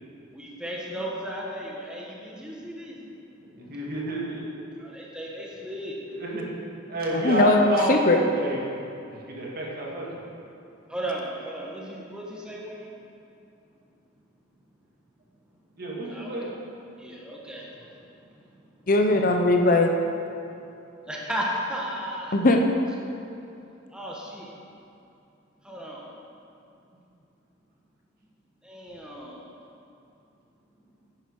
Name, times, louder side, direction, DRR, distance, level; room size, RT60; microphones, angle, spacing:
voice 1, 0.3-3.1 3.6-3.8 4.8-6.0 10.9-12.9 16.0-16.3 17.0-18.1 18.3-18.4 18.7-18.8 21.1-22.4 23.9-24.5 25.6-26.1 28.6-29.5, equal, 5° right, -4 dB, 1.4 m, -35 dB
voice 2, 3.5-4.4 6.2-6.5 6.9-7.9 8.4-8.6 9.1-10.1 15.8-16.5 19.1-19.4, right 2 dB, 50° right, -4 dB, 2.2 m, -30 dB
voice 3, 7.1-8.2 18.9-19.9 22.3-22.7, left 2 dB, 45° left, 3 dB, 0.8 m, -19 dB
10.5 x 9.8 x 4.7 m, 2.7 s
head